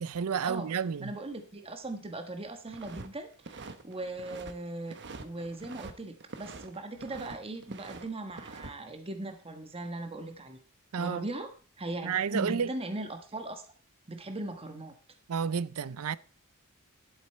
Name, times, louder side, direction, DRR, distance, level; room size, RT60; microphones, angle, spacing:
voice 1, 0.0-1.2 10.9-11.3 12.0-12.7 15.3-16.2, right 6 dB, 75° right, 0.5 m, -31 dB
voice 2, 1.0-5.0 5.2-10.6 11.0-11.5 11.8-13.6 14.1-14.9, right 2 dB, 25° right, 1.3 m, -39 dB
sound 1, 2.7-3.1 3.3-4.5 4.9-5.9 6.2-7.4 7.6-8.7, right 3 dB, 55° right, 1.0 m, -45 dB
11.0 x 8.4 x 4.3 m
head